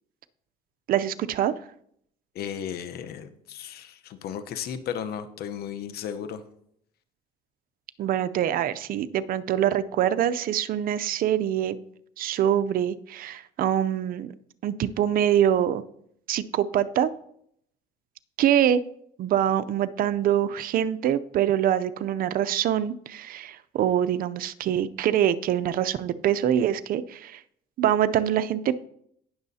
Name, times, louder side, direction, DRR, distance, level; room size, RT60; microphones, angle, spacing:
voice 1, 0.9-1.5 8.0-11.8 12.2-14.3 14.6-15.8 16.3-17.1 18.4-18.8 19.2-27.4 27.8-28.9, right 10 dB, 60° right, 12 dB, 0.5 m, -24 dB
voice 2, 2.3-6.4, left 8 dB, 65° left, 10 dB, 0.9 m, -35 dB
18.5 x 6.3 x 2.8 m, 0.71 s
cardioid pair, 110°, 17 cm